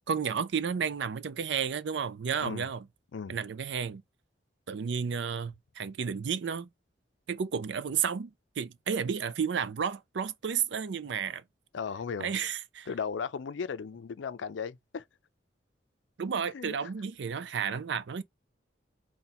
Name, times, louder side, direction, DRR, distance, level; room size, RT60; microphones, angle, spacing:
voice 1, 0.1-2.9 3.3-4.0 4.7-6.7 7.3-11.4 12.2-12.9 16.2-18.2, right 7 dB, 70° right, 0.4 m, -32 dB
voice 2, 11.7-12.3 12.9-15.0 16.5-16.9, left 6 dB, 80° left, 0.4 m, -36 dB
4.2 x 2.3 x 3.9 m
head